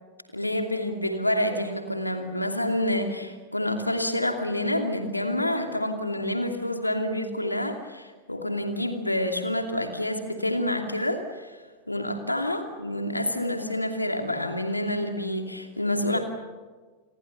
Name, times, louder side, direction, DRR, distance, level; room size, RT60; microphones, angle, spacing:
voice 1, 0.3-11.6 11.9-16.2, left 1 dB, 85° left, 5 dB, 2.7 m, -28 dB
29.0 x 22.5 x 7.2 m, 1.4 s
figure-of-eight pair, 90°, 0 cm